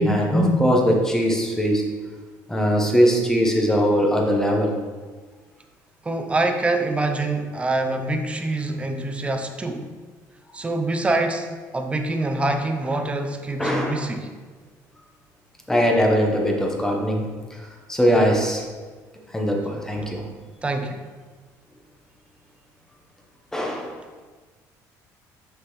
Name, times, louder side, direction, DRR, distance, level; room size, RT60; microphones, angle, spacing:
voice 1, 0.0-1.8 2.5-4.7 13.6-14.1 15.7-18.6 19.3-20.2 23.5-24.0, equal, 5° left, 0 dB, 1.0 m, -21 dB
voice 2, 6.0-9.9 10.5-11.5 11.7-14.3 20.6-21.0, right 2 dB, 15° right, 6 dB, 0.6 m, -25 dB
5.9 x 5.1 x 3.2 m, 1.4 s
cardioid pair, 115°, 7 cm